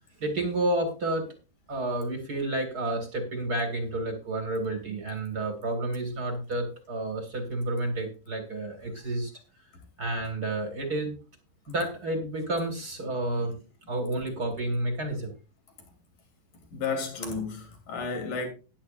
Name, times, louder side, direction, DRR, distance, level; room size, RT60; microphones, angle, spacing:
voice 1, 0.2-1.3 1.7-9.3 10.0-11.1 11.7-13.6 13.9-15.3, right 2 dB, 35° right, 1.6 m, -30 dB
voice 2, 16.7-18.5, left 4 dB, 55° left, 4.2 m, -32 dB
14.5 x 10.5 x 2.5 m
omnidirectional pair, 4.5 m